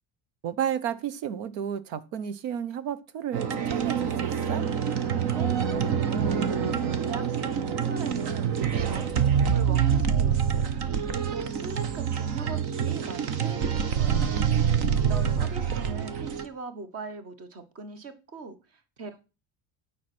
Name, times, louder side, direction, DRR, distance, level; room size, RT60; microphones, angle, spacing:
voice 1, 0.4-4.6 14.0-15.1, right 9 dB, 85° right, 1.1 m, -33 dB
sound 1, 3.3-16.5, right 7 dB, 55° right, 1.2 m, -26 dB
voice 2, 5.3-6.4 7.1-14.2 15.0-19.2, right 4 dB, 30° right, 1.2 m, -41 dB
9.6 x 5.9 x 6.0 m
cardioid pair, 180°, 47 cm